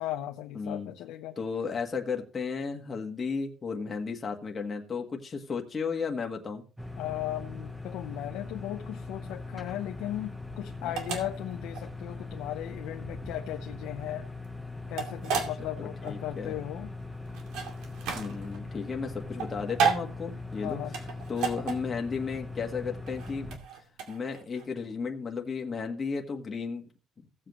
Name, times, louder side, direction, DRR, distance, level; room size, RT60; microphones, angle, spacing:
voice 1, 0.0-1.4 7.0-14.3 14.9-16.9 20.6-21.0, left 13 dB, 85° left, 0.8 m, -37 dB
voice 2, 0.5-0.9 1.4-6.6 10.8-10.9 15.8-16.6 18.1-20.8 21.3-23.5 24.1-26.9, left 5 dB, 25° left, 1.5 m, -34 dB
sound 1, 6.8-23.6, left 3 dB, ahead, 1.1 m, -40 dB
sound 2, 9.3-24.7, right 6 dB, 85° right, 2.4 m, -34 dB
16.5 x 7.6 x 3.1 m
cardioid pair, 150°, 0 cm